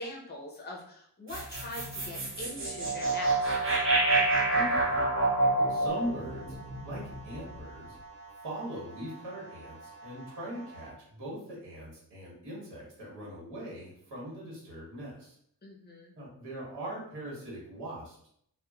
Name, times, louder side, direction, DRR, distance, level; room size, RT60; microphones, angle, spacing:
voice 1, 0.0-3.8 15.6-16.1, left 1 dB, 25° left, -2 dB, 0.6 m, -42 dB
sound 1, 1.3-7.6, right 2 dB, 35° right, 0.6 m, -28 dB
voice 2, 4.5-6.6 6.8-8.0 8.4-15.4 16.1-18.3, right 1 dB, 80° right, -5 dB, 1.2 m, -41 dB
sound 2, 5.9-10.9, right 3 dB, ahead, 0.8 m, -50 dB
2.9 x 2.2 x 2.3 m, 0.67 s
wide cardioid pair, 175°, 40 cm